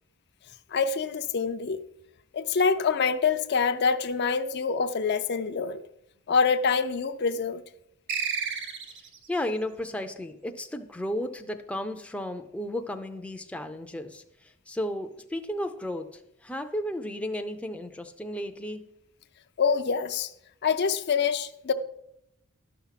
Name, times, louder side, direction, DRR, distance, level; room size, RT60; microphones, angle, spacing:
voice 1, 0.7-1.8 2.3-5.8 6.3-7.6 19.6-20.3 20.6-21.7, left 5 dB, 50° left, 0.5 m, -25 dB
sound 1, 8.1-9.3, right 6 dB, 55° right, 1.2 m, -31 dB
voice 2, 9.3-18.9, left 1 dB, 5° left, 0.5 m, -34 dB
12.0 x 5.8 x 5.8 m
head